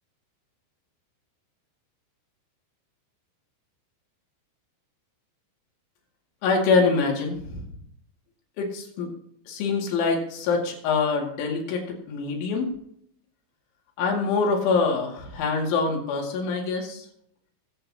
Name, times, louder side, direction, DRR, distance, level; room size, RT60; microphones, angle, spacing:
voice 1, 6.4-7.6 8.6-9.1 9.5-12.7 14.0-17.1, left 4 dB, 80° left, 0 dB, 4.6 m, -25 dB
22.5 x 7.9 x 2.8 m, 0.72 s
omnidirectional pair, 5.4 m